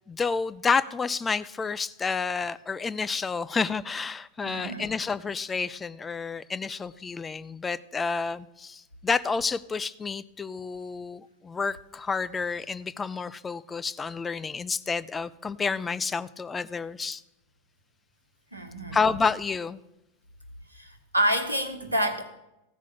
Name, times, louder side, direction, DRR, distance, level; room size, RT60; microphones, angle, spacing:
voice 1, 0.1-17.2 18.9-19.8, left 5 dB, 15° left, 14 dB, 0.3 m, -29 dB
voice 2, 4.4-5.0 18.5-19.0 20.7-22.2, right 1 dB, 85° right, 6 dB, 1.2 m, -28 dB
14.5 x 4.8 x 6.7 m, 0.90 s
figure-of-eight pair, 90°, 0 cm